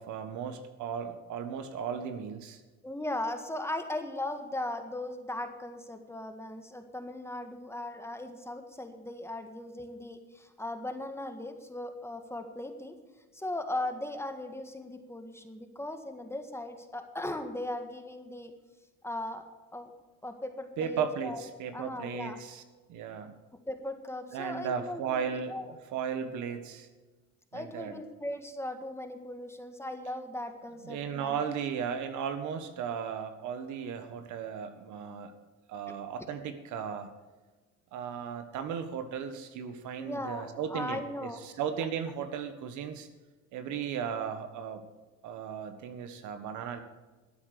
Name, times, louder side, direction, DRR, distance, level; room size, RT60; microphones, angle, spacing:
voice 1, 0.0-2.6 20.8-22.6 22.9-23.4 24.3-25.5 25.9-26.9 27.5-27.9 30.8-35.3 35.7-37.1 37.9-43.1 43.5-44.9 45.2-46.8, right 7 dB, 75° right, 8 dB, 1.7 m, -36 dB
voice 2, 2.8-13.0 13.3-18.5 19.0-19.4 19.7-19.9 20.2-21.5 21.7-22.4 23.7-25.7 27.5-31.4 40.0-41.4, left 1 dB, 10° left, 6 dB, 1.7 m, -38 dB
13.0 x 9.1 x 6.8 m, 1.3 s
cardioid pair, 110°, 30 cm